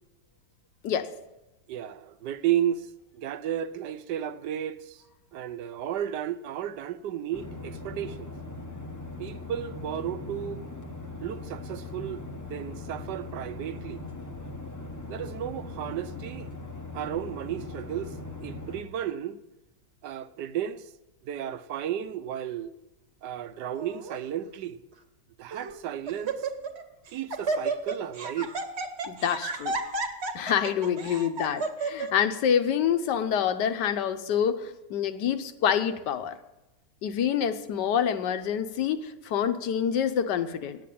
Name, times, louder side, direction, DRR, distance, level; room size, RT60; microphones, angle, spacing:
voice 1, 1.7-5.0 5.3-8.3 9.2-10.6 11.2-14.0 15.1-16.5 16.9-19.4 20.0-20.9 21.2-22.7 23.2-24.8 25.4-26.5 27.1-28.5, right 10 dB, 85° right, 1.3 m, -33 dB
sound 1, 7.3-18.8, left 2 dB, 20° left, 0.6 m, -40 dB
Laughter, 23.7-24.2 24.9-25.0 25.5-25.8 26.1-26.8 27.1-32.1, right 3 dB, 45° right, 1.1 m, -32 dB
voice 2, 29.0-29.8 30.3-36.4 37.0-40.8, left 8 dB, 85° left, 1.4 m, -27 dB
9.1 x 8.4 x 8.5 m
omnidirectional pair, 1.8 m